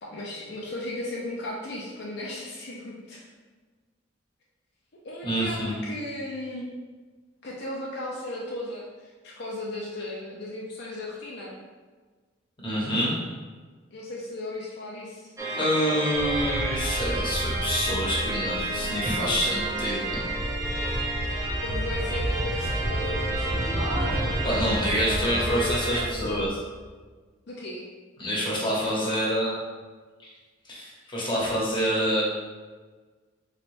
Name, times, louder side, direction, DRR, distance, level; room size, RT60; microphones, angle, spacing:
voice 1, 0.0-3.2 5.0-6.7 7.4-11.5 13.9-15.3 21.6-26.5 27.5-27.9, left 1 dB, 60° left, -4 dB, 0.5 m, -36 dB
voice 2, 5.2-5.8 12.6-13.1 15.6-20.2 24.4-26.5 28.2-29.5 30.7-32.2, equal, 25° left, -6 dB, 1.0 m, -27 dB
sound 1, 15.4-26.0, right 2 dB, 15° right, 0.6 m, -32 dB
sound 2, 16.1-26.5, equal, 70° right, 1.3 m, -32 dB
4.0 x 3.2 x 2.6 m, 1.4 s
head